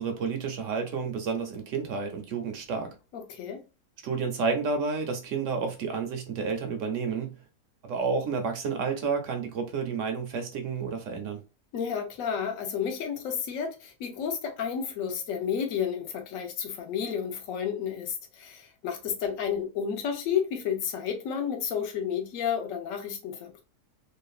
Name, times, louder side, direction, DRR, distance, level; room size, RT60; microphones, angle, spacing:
voice 1, 0.0-3.0 4.0-7.4 7.8-11.4, right 5 dB, 70° right, 0.8 m, -30 dB
voice 2, 3.1-3.6 11.7-23.6, left 7 dB, 70° left, 1.1 m, -31 dB
3.2 x 2.1 x 2.4 m
omnidirectional pair, 1.6 m